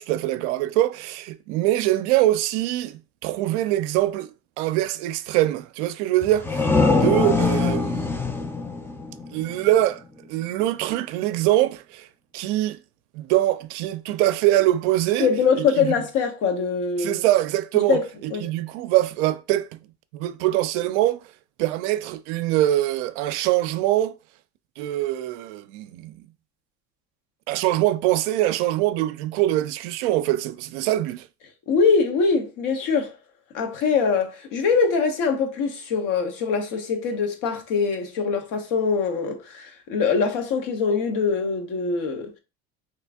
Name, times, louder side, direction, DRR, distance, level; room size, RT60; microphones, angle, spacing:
voice 1, 0.0-8.1 9.3-10.0 10.3-12.1 12.3-12.8 13.1-15.3 15.6-15.9 17.0-19.8 20.1-21.2 21.6-24.1 24.8-26.3 27.5-31.3, right 14 dB, 80° right, 0.5 m, -23 dB
sound 1, 6.2-9.8, left 3 dB, 5° left, 0.3 m, -23 dB
voice 2, 15.2-17.2 17.9-18.0 18.3-18.5 31.7-33.1 33.5-42.3, left 5 dB, 65° left, 1.0 m, -23 dB
3.0 x 2.5 x 3.4 m
supercardioid pair, 100°, 35 cm